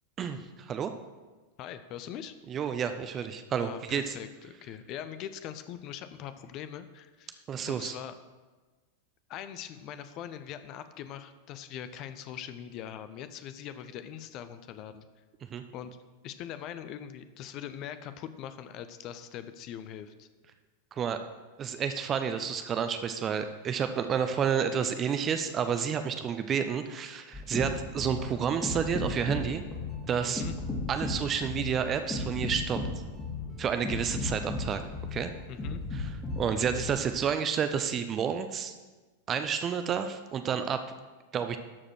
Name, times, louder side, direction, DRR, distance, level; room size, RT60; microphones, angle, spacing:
voice 1, 0.2-0.9 2.5-4.1 7.5-8.0 15.5-15.6 20.9-21.2 21.6-29.6 30.1-30.4 30.9-32.8 33.6-34.8 35.1-35.3 35.9-36.1 36.4-38.7 39.3-40.8 41.3-41.6, right 7 dB, 25° right, 9 dB, 0.6 m, -30 dB
voice 2, 1.6-2.3 3.6-7.3 7.7-8.1 9.3-15.1 15.7-16.0 16.2-20.3 30.2-30.5 35.5-35.8, left 10 dB, 40° left, 11 dB, 0.6 m, -42 dB
sound 1, 27.3-37.2, left 3 dB, 15° left, 2.4 m, -35 dB
13.0 x 5.0 x 6.2 m, 1.3 s
figure-of-eight pair, 90°, 0 cm